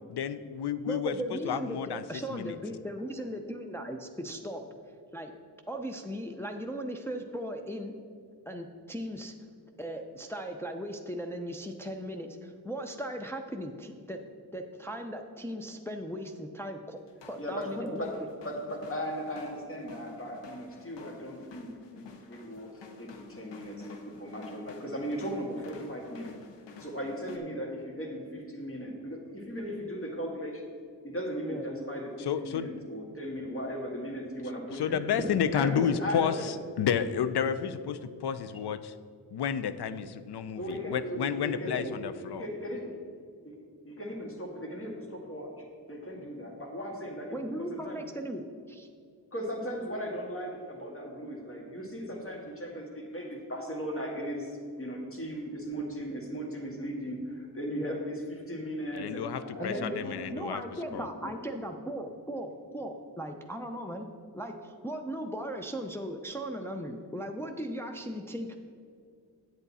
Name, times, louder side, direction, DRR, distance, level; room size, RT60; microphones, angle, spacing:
voice 1, 0.1-1.1 1.4-2.0 2.3-2.5 32.2-32.7 34.7-38.9 39.3-42.4 58.9-60.6 60.9-61.1, left 8 dB, 65° left, 12 dB, 0.6 m, -31 dB
voice 2, 0.9-5.3 5.7-8.0 8.5-9.3 9.8-14.2 14.5-17.0 17.2-18.1 31.4-31.6 41.7-41.9 47.3-48.9 57.8-58.0 59.6-60.0 60.3-68.6, equal, 5° left, 3 dB, 0.6 m, -37 dB
sound 1, 17.1-27.4, left 4 dB, 85° left, 0.9 m, -52 dB
voice 3, 17.4-22.0 22.3-26.3 26.8-30.7 31.0-35.0 35.5-36.5 40.6-43.0 43.4-43.6 43.8-48.0 49.3-60.3 60.7-61.3, equal, 30° left, 0 dB, 2.0 m, -37 dB
8.0 x 8.0 x 4.1 m, 2.3 s
cardioid pair, 75°, 42 cm